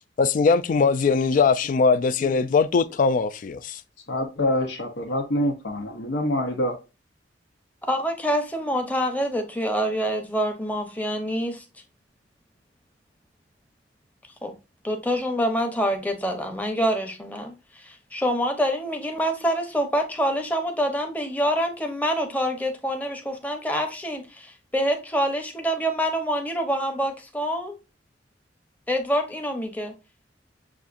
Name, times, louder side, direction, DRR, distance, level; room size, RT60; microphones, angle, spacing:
voice 1, 0.2-3.8, left 4 dB, 45° left, 0.3 m, -21 dB
voice 2, 4.1-6.7, left 1 dB, 85° left, 0.8 m, -26 dB
voice 3, 7.9-11.6 14.4-14.5 14.8-27.8 28.9-29.9, equal, 10° left, 0.8 m, -26 dB
6.8 x 2.5 x 2.5 m
head